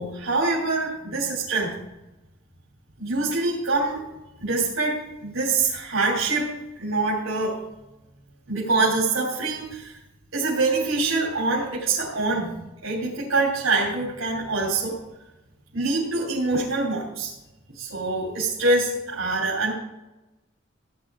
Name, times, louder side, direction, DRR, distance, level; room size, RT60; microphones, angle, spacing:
voice 1, 0.0-1.8 3.0-4.0 4.4-7.6 8.5-10.0 10.3-15.0 15.7-17.3 17.7-19.7, right 3 dB, 85° right, -5 dB, 3.3 m, -25 dB
16.5 x 9.9 x 3.8 m, 0.97 s
head